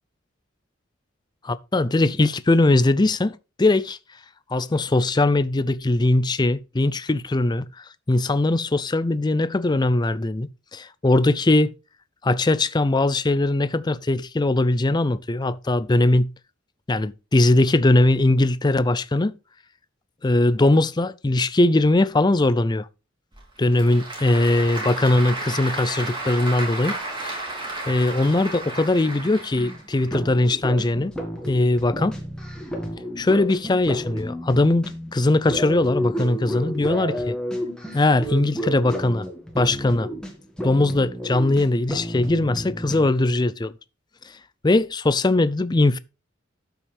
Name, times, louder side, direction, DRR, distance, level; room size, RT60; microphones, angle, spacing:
voice 1, 1.4-4.0 4.5-11.7 12.2-16.3 16.9-19.3 20.2-22.9 23.6-27.0 27.2-27.4 27.9-31.1 31.5-32.2 33.2-37.4 37.9-39.3 39.6-40.1 40.6-43.7 44.6-46.0, left 2 dB, 20° left, 0.5 m, -20 dB
Applause / Crowd, 23.3-30.1, right 2 dB, 25° right, 3.5 m, -33 dB
sound 1, 29.6-43.1, equal, 5° left, 1.9 m, -32 dB
12.5 x 5.9 x 3.5 m
head